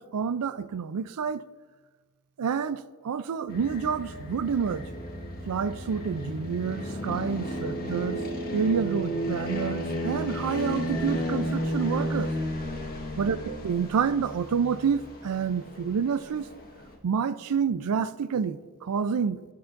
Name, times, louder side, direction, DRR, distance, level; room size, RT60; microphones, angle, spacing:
voice 1, 0.0-1.5 2.4-4.9 5.5-8.3 8.5-12.3 13.2-16.5 17.0-19.5, right 6 dB, 90° right, 0.4 m, -28 dB
sound 1, 3.5-16.9, equal, 40° left, 1.3 m, -33 dB
17.0 x 7.1 x 2.6 m
head